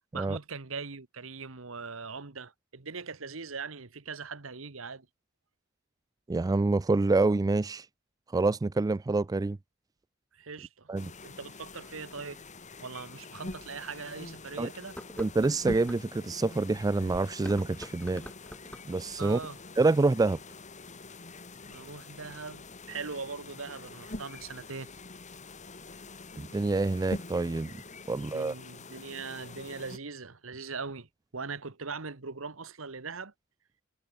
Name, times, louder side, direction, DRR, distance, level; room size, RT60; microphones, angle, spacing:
voice 1, 0.1-5.1 10.3-10.9 11.2-12.4 12.8-15.0 19.2-19.6 21.6-24.9 28.1-33.3, right 4 dB, 80° right, 1.5 m, -41 dB
voice 2, 6.3-7.9 8.3-9.6 10.9-11.1 14.6-14.7 15.2-18.2 18.9-19.4 19.8-20.4 26.4-27.7 28.1-28.5, right 3 dB, 20° right, 0.3 m, -27 dB
sound 1, 11.0-30.0, left 2 dB, 35° left, 2.6 m, -45 dB
sound 2, 12.9-13.0 13.5-13.6 14.8-16.0 17.3-19.0, equal, 5° left, 3.6 m, -45 dB
head